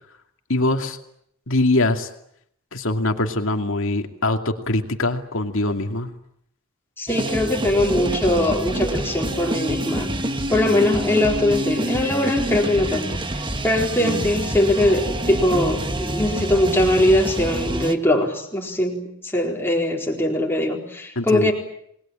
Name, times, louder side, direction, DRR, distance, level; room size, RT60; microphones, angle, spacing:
voice 1, 0.5-1.0 1.5-2.1 2.7-6.1 14.0-14.2 21.2-21.5, left 2 dB, 60° left, 5 dB, 2.5 m, -23 dB
voice 2, 7.0-10.2 10.5-13.2 13.6-21.5, left 1 dB, 10° left, 0 dB, 4.3 m, -21 dB
sound 1, 7.1-17.9, right 1 dB, 20° right, 1.5 m, -27 dB
28.5 x 20.5 x 8.9 m, 0.73 s
head